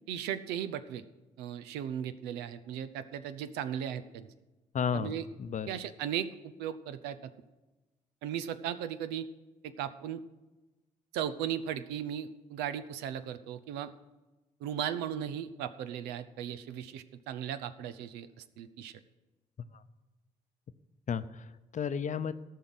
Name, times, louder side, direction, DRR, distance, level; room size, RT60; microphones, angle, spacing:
voice 1, 0.1-1.0 1.4-4.3 4.9-5.2 5.7-7.3 8.2-9.3 9.6-10.2 11.1-13.9 14.6-18.9, right 9 dB, 85° right, 12 dB, 0.6 m, -37 dB
voice 2, 4.7-5.1 5.4-5.7 19.7-19.8 21.1-22.3, left 7 dB, 50° left, 13 dB, 0.7 m, -33 dB
13.5 x 5.6 x 7.9 m, 1.1 s
hypercardioid pair, 50°, 17 cm